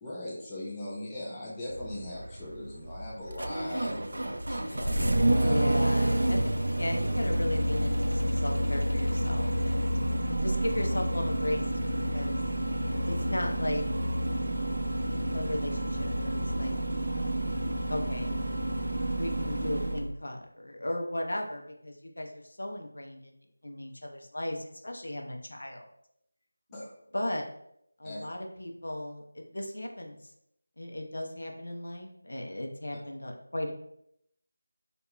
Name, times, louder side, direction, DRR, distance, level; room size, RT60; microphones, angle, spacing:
voice 1, 0.0-5.6 26.7-26.9 28.0-28.2, left 1 dB, 10° left, -8 dB, 0.3 m, -40 dB
Engine starting, 1.7-20.1, right 1 dB, 90° right, 0.3 m, -29 dB
voice 2, 5.4-9.9 10.4-12.4 13.1-13.9 15.3-16.7 17.9-18.4 19.1-23.2 23.6-25.8 27.1-27.5 28.0-30.2 30.8-33.7, left 1 dB, 80° left, 2 dB, 0.5 m, -36 dB
2.9 x 2.2 x 2.3 m, 0.76 s
figure-of-eight pair, 175°, 0 cm